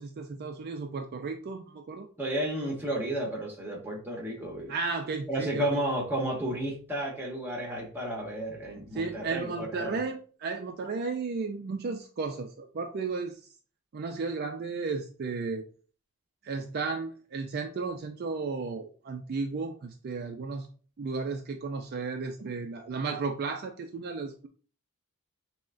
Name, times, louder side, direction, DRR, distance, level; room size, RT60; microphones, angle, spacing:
voice 1, 0.0-2.1 4.7-5.6 8.9-13.4 13.9-15.6 16.4-20.7 21.0-24.5, right 4 dB, 45° right, 5 dB, 0.4 m, -34 dB
voice 2, 2.2-4.7 5.3-9.9, right 1 dB, 10° right, -1 dB, 1.0 m, -32 dB
5.8 x 2.1 x 2.5 m, 0.40 s
head